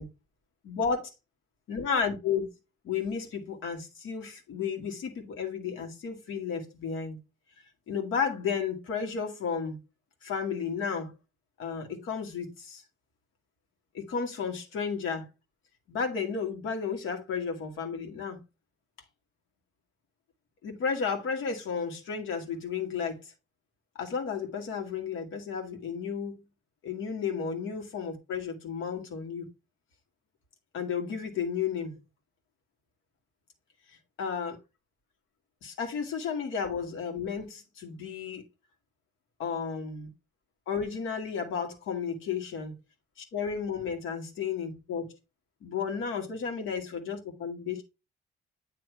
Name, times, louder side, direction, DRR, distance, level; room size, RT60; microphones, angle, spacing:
voice 1, 0.7-1.0 1.7-2.4 2.8-7.2 7.9-9.8 10.2-11.1 11.6-12.8 13.9-15.3 15.9-18.4 20.6-23.3 24.0-26.3 26.8-29.5 30.7-32.0 34.2-34.6 35.6-38.4 39.4-40.1 40.7-42.7 43.3-45.1 45.6-47.8, left 6 dB, 85° left, 1.8 m, -33 dB
8.3 x 3.1 x 4.6 m
cardioid pair, 90°, 20 cm